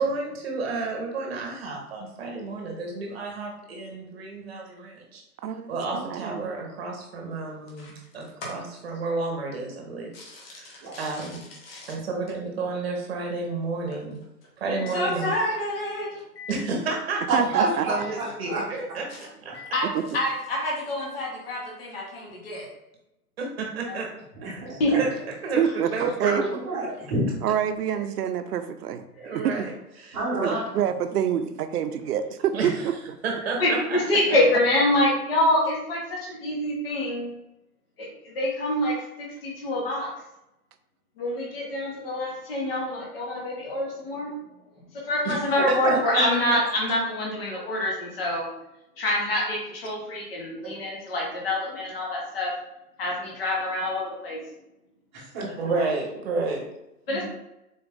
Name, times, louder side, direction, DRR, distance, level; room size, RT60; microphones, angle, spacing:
voice 1, 0.0-5.2 5.7-11.4 11.9-14.2 14.6-15.3 16.5-17.3 17.6-19.5 23.4-24.1 24.4-24.7 25.0-25.1 25.4-25.7 25.9-26.5 29.2-29.7 30.0-30.2 30.4-30.5 32.5-32.8 33.2-34.0 45.2-45.4 45.7-46.0 50.6-51.0 55.6-56.7, right 3 dB, 40° right, 0 dB, 1.0 m, -31 dB
voice 2, 5.4-6.5 17.3-17.9 19.8-20.0 25.6-26.4 27.4-29.1 29.4-29.5 30.3-32.9, right 9 dB, 80° right, 10 dB, 0.6 m, -27 dB
voice 3, 10.1-11.0 11.7-11.9 14.7-16.5 19.5-22.7 24.8-24.9 29.2-29.4 33.6-37.3 38.0-40.1 41.2-44.3 45.1-48.5 49.0-52.5 53.0-54.4 55.7-55.9 57.1-57.2, left 1 dB, 40° left, -3 dB, 1.0 m, -26 dB
voice 4, 17.3-18.6 24.4-25.0 26.2-27.3 30.1-30.9 45.8-46.2 55.1-55.7 57.1-57.2, right 2 dB, 15° right, -12 dB, 0.9 m, -28 dB
4.0 x 2.5 x 3.4 m, 0.88 s
hypercardioid pair, 170°, 46 cm